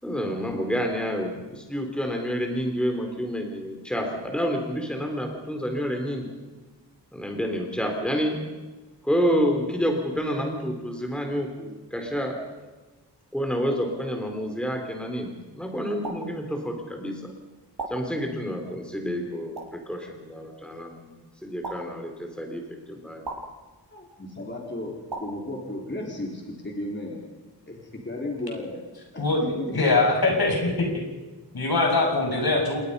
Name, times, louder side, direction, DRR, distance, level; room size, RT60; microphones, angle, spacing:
voice 1, 0.0-6.3 7.1-8.4 9.0-12.4 13.3-17.3 17.9-21.1 21.4-23.2, equal, ahead, 3 dB, 3.8 m, -29 dB
sound 1, 16.0-16.2 17.8-17.9 19.5-19.7 21.6-21.8 23.2-23.4 25.1-25.2, right 3 dB, 60° right, 6.6 m, -33 dB
voice 2, 23.9-24.9 25.2-27.2 27.7-27.8 28.0-28.8 29.1-29.8, left 1 dB, 25° left, -1 dB, 4.5 m, -34 dB
voice 3, 29.2-30.9 31.5-32.8, left 3 dB, 55° left, 1 dB, 6.9 m, -22 dB
28.5 x 20.5 x 5.6 m, 1.2 s
wide cardioid pair, 90°, 43 cm